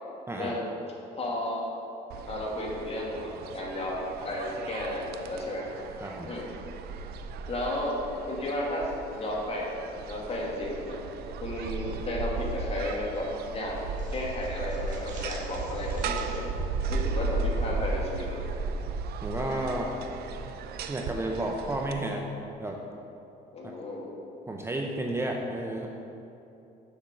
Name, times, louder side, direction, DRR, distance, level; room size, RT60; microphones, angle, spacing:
voice 1, 0.3-0.7 1.2-1.6 2.3-5.7 6.3-6.5 7.5-8.0 8.3-9.8 10.1-11.0 11.4-13.8 14.1-16.4 16.9-18.5 19.7-19.8 23.5-24.1, left 1 dB, 35° left, -3 dB, 2.0 m, -33 dB
sound 1, 2.1-21.9, right 3 dB, 70° right, 0.6 m, -35 dB
voice 2, 6.0-6.3 19.2-20.0 20.9-22.3 22.6-22.8 23.6-23.7 24.5-25.9, right 1 dB, 15° right, 1 dB, 0.7 m, -32 dB
sound 2, 11.9-12.6 12.9-13.1 13.5-18.0, right 2 dB, 45° right, 2.0 m, -51 dB
7.3 x 5.9 x 6.3 m, 2.8 s
cardioid pair, 110°, 17 cm